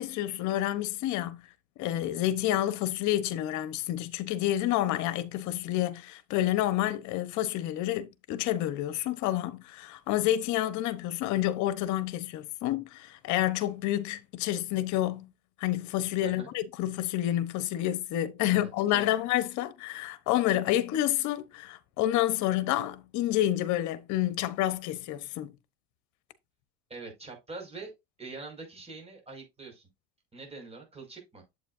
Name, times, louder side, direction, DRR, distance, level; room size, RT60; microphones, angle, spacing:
voice 1, 0.0-1.4 1.8-15.3 15.6-25.5, left 13 dB, 60° left, 1.1 m, -29 dB
voice 2, 18.5-19.1 26.9-27.9 28.2-29.9 30.3-31.4, right 3 dB, 20° right, 5.6 m, -44 dB
8.1 x 8.0 x 2.6 m
supercardioid pair, 110°, 33 cm